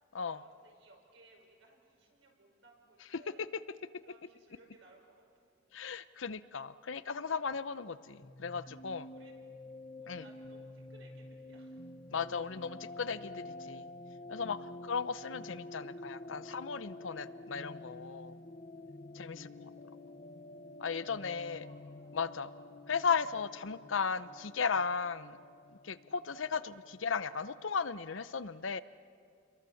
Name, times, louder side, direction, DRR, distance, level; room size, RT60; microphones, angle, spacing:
voice 1, 0.3-3.6 4.0-5.3 9.1-9.4 10.0-11.9 19.3-20.3 21.2-22.3, right 2 dB, 75° right, 1 dB, 5.7 m, -62 dB
voice 2, 3.3-3.6 5.7-9.1 10.1-10.3 12.1-13.9 14.3-18.4 19.1-19.5 20.8-21.6 22.1-22.5 22.9-25.4 25.8-28.8, left 5 dB, 75° left, 14 dB, 0.7 m, -36 dB
sound 1, 8.2-27.7, left 2 dB, 35° left, 0.8 m, -49 dB
29.5 x 22.5 x 7.2 m, 2.3 s
head